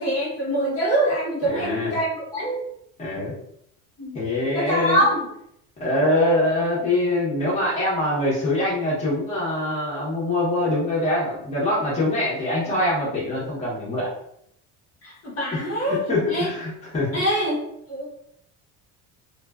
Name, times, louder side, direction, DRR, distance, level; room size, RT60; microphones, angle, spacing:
voice 1, 0.0-2.6 4.0-4.2 4.5-5.3 15.0-16.0 16.3-16.5 17.1-17.6 17.9-18.1, right 1 dB, 40° left, -5 dB, 1.1 m, -24 dB
voice 2, 1.4-2.0 3.0-3.4 4.1-5.0 5.8-14.1 15.5-17.2, left 1 dB, 20° left, -7 dB, 1.0 m, -24 dB
2.4 x 2.4 x 2.3 m, 0.73 s
cardioid pair, 125°, 36 cm